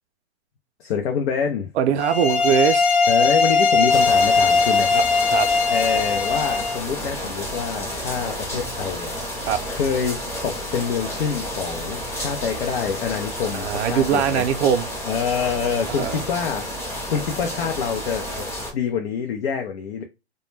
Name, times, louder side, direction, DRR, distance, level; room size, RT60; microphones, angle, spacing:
voice 1, 0.8-1.7 3.1-5.0 5.7-9.1 9.7-14.4 15.1-16.7 17.1-18.5 18.7-20.0, left 6 dB, 65° left, 0.6 m, -26 dB
voice 2, 1.8-2.9 4.9-5.0 5.3-5.5 9.4-9.6 13.5-14.9 15.9-16.2, right 8 dB, 75° right, 0.5 m, -21 dB
sound 1, 2.0-6.8, left 4 dB, 25° left, 1.1 m, -19 dB
sound 2, 3.9-18.7, equal, 10° left, 0.7 m, -31 dB
2.2 x 2.1 x 3.1 m
hypercardioid pair, 135°, 33 cm